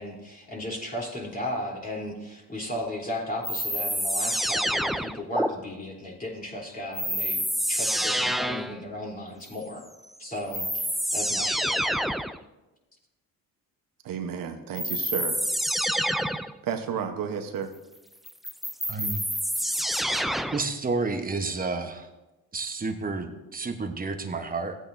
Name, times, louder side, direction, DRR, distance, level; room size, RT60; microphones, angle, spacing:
voice 1, 0.0-7.4 7.7-9.8 10.2-11.8, left 1 dB, 25° left, -2 dB, 3.6 m, -35 dB
sound 1, 3.4-5.5 6.9-8.8 10.0-10.1 10.5-12.4 14.8-16.6 18.3-20.7, equal, ahead, 0.4 m, -27 dB
voice 2, 14.0-15.4 16.6-17.7, right 7 dB, 65° right, 6 dB, 1.2 m, -31 dB
voice 3, 18.9-19.2 20.5-22.1 22.5-24.8, right 3 dB, 25° right, 6 dB, 1.2 m, -30 dB
15.5 x 8.6 x 2.7 m, 1.1 s
supercardioid pair, 75°, 36 cm